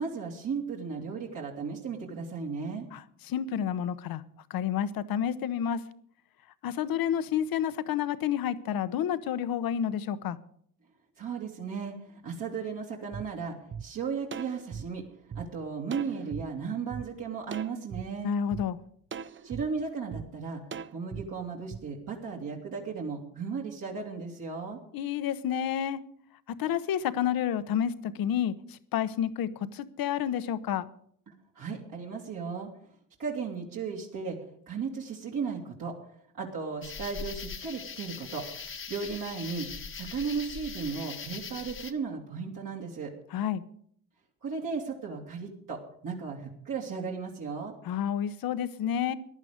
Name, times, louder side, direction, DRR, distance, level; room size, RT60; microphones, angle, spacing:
voice 1, 0.0-2.9 11.2-15.0 15.3-18.3 19.4-20.6 20.9-24.8 31.3-32.7 33.2-36.0 36.3-38.5 38.9-39.7 39.9-43.1 44.4-47.7, right 5 dB, 55° right, 2.5 m, -35 dB
voice 2, 3.3-4.2 4.5-5.8 6.6-10.4 18.2-18.8 24.9-26.0 26.5-30.9 43.3-43.6 47.8-49.1, left 9 dB, 65° left, 1.0 m, -30 dB
sound 1, 13.1-13.2 13.7-13.8 14.3-15.4 15.9-16.4 16.9-17.0 17.5-18.0 18.5-18.6 19.1-19.6 20.1-20.2 20.7-21.2 21.7-21.8, right 7 dB, 30° right, 0.7 m, -39 dB
sound 2, 36.8-41.9, left 6 dB, 30° left, 1.2 m, -41 dB
15.0 x 11.0 x 5.1 m
cardioid pair, 90°, 39 cm